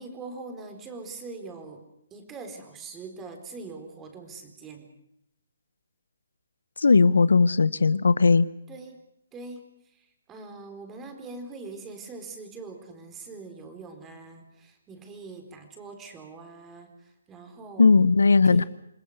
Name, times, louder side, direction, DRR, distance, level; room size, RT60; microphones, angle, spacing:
voice 1, 0.0-1.8 2.1-4.9 8.7-9.0 9.3-18.0 18.3-18.7, right 3 dB, 15° right, 5 dB, 4.2 m, -42 dB
voice 2, 6.8-8.5 17.8-18.6, left 4 dB, 80° left, 18 dB, 0.9 m, -18 dB
27.5 x 21.0 x 6.6 m, 0.79 s
hypercardioid pair, 145°, 0 cm